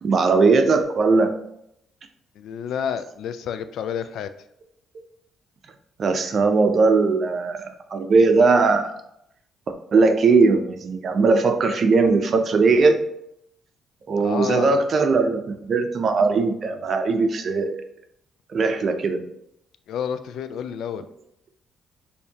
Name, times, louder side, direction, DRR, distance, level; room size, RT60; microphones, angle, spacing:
voice 1, 0.0-1.4 6.0-8.9 9.9-13.0 14.1-17.8 18.5-19.2, right 4 dB, 50° right, 7 dB, 0.6 m, -19 dB
voice 2, 2.4-4.3 14.2-14.7 19.9-21.0, left 8 dB, 80° left, 11 dB, 0.4 m, -30 dB
6.7 x 2.7 x 2.8 m, 0.76 s
cardioid pair, 95°, 0 cm